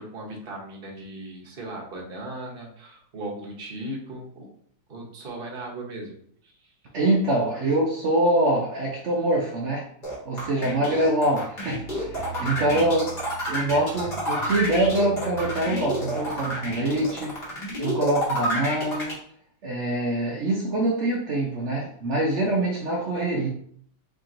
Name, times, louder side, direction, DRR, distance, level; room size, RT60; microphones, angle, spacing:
voice 1, 0.0-4.5 4.9-6.2 6.4-6.7 10.6-11.0 12.3-12.9, right 1 dB, 40° right, -1 dB, 0.9 m, -37 dB
voice 2, 6.9-9.9 10.2-13.0 13.5-17.4 17.8-19.2 19.6-23.5, right 1 dB, 70° right, -2 dB, 0.6 m, -24 dB
sound 1, 10.0-19.1, equal, 30° left, 1.2 m, -30 dB
sound 2, 11.7-17.0, right 5 dB, 90° right, 1.4 m, -41 dB
3.4 x 2.9 x 3.7 m, 0.63 s
omnidirectional pair, 2.0 m